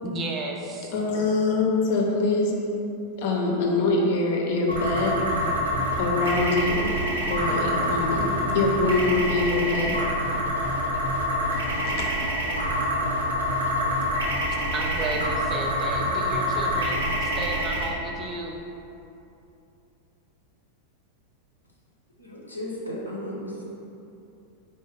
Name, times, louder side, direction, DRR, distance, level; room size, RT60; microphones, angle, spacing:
voice 1, 0.0-0.9 14.7-18.6, right 2 dB, 30° right, 1 dB, 0.5 m, -33 dB
voice 2, 0.9-2.6 3.2-5.3 6.0-7.0 7.3-10.0 11.9-12.0, left 3 dB, 50° left, -1 dB, 0.7 m, -24 dB
sound 1, 4.7-17.8, equal, 70° right, 0.8 m, -26 dB
voice 3, 22.2-23.6, equal, 85° left, -4 dB, 0.7 m, -35 dB
4.5 x 2.9 x 3.3 m, 2.8 s
figure-of-eight pair, 90°, 0 cm